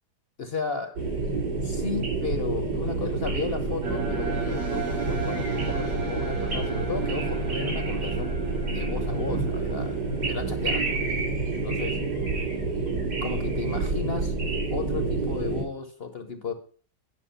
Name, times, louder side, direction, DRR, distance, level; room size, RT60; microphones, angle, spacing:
voice 1, 0.4-1.0 1.6-8.4 8.7-10.0 10.3-11.0 11.5-12.0 13.2-14.3 14.7-16.5, left 5 dB, 40° left, 8 dB, 1.0 m, -34 dB
sound 1, 1.0-15.6, right 3 dB, 80° right, 3.9 m, -28 dB
sound 2, 3.8-11.1, right 4 dB, 55° right, 2.5 m, -38 dB
9.8 x 6.0 x 5.6 m, 0.42 s
omnidirectional pair, 1.8 m